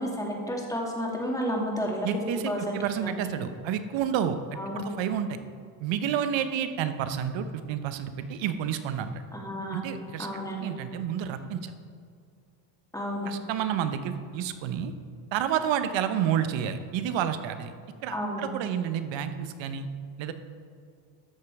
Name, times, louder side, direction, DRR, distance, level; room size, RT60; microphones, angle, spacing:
voice 1, 0.0-2.1 2.5-3.3 4.5-4.9 9.3-9.8 10.2-10.7 12.9-13.3 18.1-18.5, equal, 5° left, -2 dB, 2.4 m, -31 dB
voice 2, 2.0-5.4 5.8-9.1 9.7-10.3 10.6-11.7 13.3-14.9 15.3-17.7 18.0-19.9 20.2-20.3, right 9 dB, 65° right, 10 dB, 0.9 m, -30 dB
12.5 x 6.6 x 4.8 m, 2.3 s
supercardioid pair, 85°, 49 cm